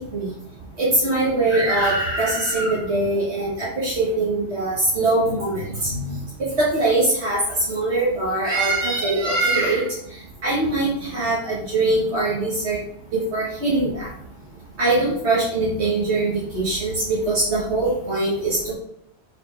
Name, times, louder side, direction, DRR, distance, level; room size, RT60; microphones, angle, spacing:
voice 1, 0.8-6.2 6.6-7.4 7.7-9.9 10.4-12.8 13.1-14.1 14.8-18.7, right 2 dB, 80° right, -7 dB, 2.1 m, -22 dB
4.7 x 4.7 x 5.8 m, 0.70 s
omnidirectional pair, 1.1 m